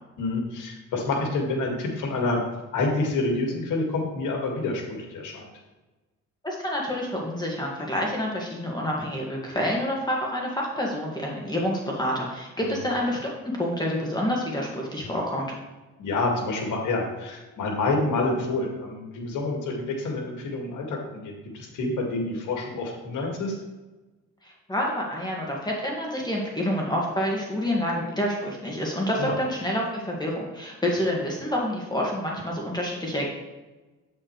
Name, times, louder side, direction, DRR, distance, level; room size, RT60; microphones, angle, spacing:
voice 1, 0.2-2.4 2.7-5.4 12.6-12.7 16.0-23.6 29.2-29.3, left 2 dB, 80° left, 0 dB, 2.1 m, -28 dB
voice 2, 6.4-15.5 24.4-33.3, equal, 15° left, -2 dB, 1.9 m, -28 dB
8.4 x 7.8 x 3.2 m, 1.2 s
cardioid pair, 90°, 30 cm